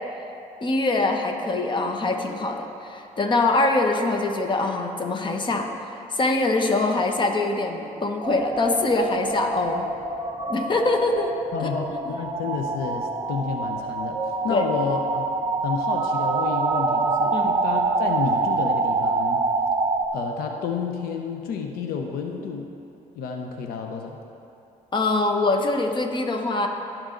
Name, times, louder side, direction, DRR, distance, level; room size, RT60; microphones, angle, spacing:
voice 1, 0.6-5.7 6.1-9.9 10.5-11.3 11.6-11.7 14.5-14.6 17.3-17.5 24.9-26.7, left 2 dB, 30° left, 4 dB, 1.1 m, -23 dB
sound 1, 8.2-20.1, right 3 dB, 25° right, 0.8 m, -26 dB
voice 2, 11.5-15.2 15.6-19.4 20.1-22.7 23.2-24.2, left 5 dB, 80° left, 3 dB, 0.8 m, -30 dB
17.5 x 6.3 x 3.9 m, 2.8 s
cardioid pair, 100°, 15 cm